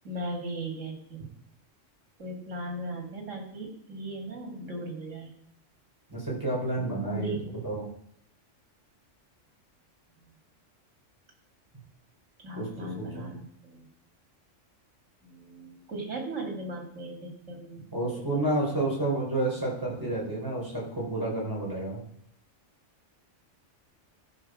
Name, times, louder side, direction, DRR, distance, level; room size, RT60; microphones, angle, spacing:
voice 1, 0.0-1.3 2.2-5.3 6.8-7.4 10.1-10.3 12.4-13.9 15.2-18.8, right 1 dB, 80° right, 2 dB, 2.6 m, -38 dB
voice 2, 6.1-7.3 7.6-7.9 12.6-13.3 17.9-22.0, right 2 dB, 15° right, -5 dB, 4.2 m, -30 dB
14.0 x 5.4 x 6.2 m, 0.69 s
omnidirectional pair, 1.3 m